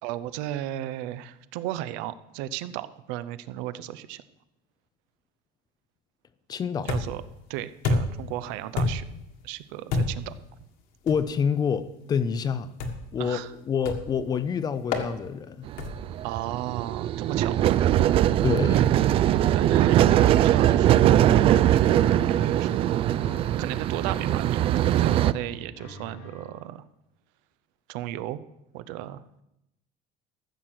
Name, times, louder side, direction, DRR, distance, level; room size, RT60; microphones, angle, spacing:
voice 1, 0.0-4.2 6.8-7.2 7.5-9.0 9.4-10.3 13.2-13.5 16.2-17.9 19.5-23.2 23.6-26.8 27.9-28.4 28.7-29.4, right 13 dB, 85° right, 0.7 m, -35 dB
voice 2, 6.5-6.9 11.0-12.7 13.1-13.4 13.6-15.7 18.4-18.9, left 7 dB, 25° left, 0.6 m, -27 dB
sound 1, 6.9-7.3 7.8-8.3 8.8-9.2 9.9-10.3 11.1-11.3 12.8-13.2 13.9-14.2 14.9-15.1 15.8-16.1, left 3 dB, 55° left, 1.7 m, -28 dB
sound 2, 15.7-25.3, right 12 dB, 35° right, 0.3 m, -21 dB
sound 3, 19.8-26.6, left 2 dB, 75° left, 3.7 m, -47 dB
14.0 x 6.4 x 7.5 m
cardioid pair, 170°, 17 cm